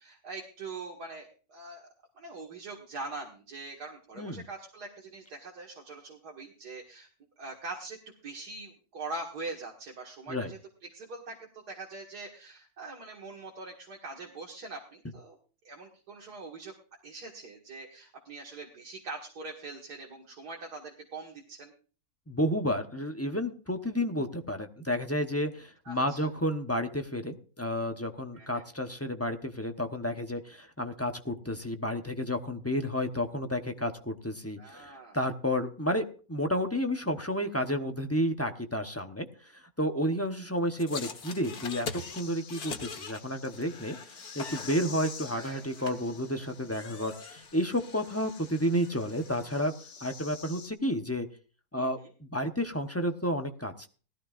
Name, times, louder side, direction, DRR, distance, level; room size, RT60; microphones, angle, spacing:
voice 1, 0.0-1.9 2.2-7.1 7.4-8.0 8.2-15.4 15.6-16.7 17.0-21.7 25.9-26.3 28.3-28.6 34.6-35.2 45.3-45.6 51.8-52.1, right 3 dB, 85° right, -1 dB, 2.4 m, -43 dB
voice 2, 22.3-49.7 50.0-51.3 51.7-53.9, equal, 15° left, 5 dB, 0.7 m, -31 dB
sound 1, 40.8-49.6, left 5 dB, 75° left, 1.9 m, -43 dB
sound 2, 42.0-50.7, left 6 dB, 50° left, 1.3 m, -49 dB
18.5 x 14.0 x 2.5 m, 0.38 s
omnidirectional pair, 1.7 m